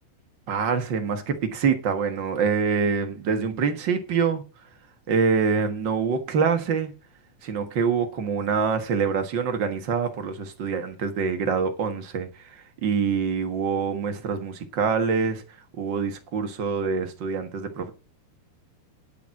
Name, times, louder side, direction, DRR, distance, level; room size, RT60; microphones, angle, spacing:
voice 1, 0.5-4.7 5.1-6.9 7.4-17.9, right 6 dB, 65° right, 1.1 m, -25 dB
10.5 x 7.1 x 5.9 m
omnidirectional pair, 4.4 m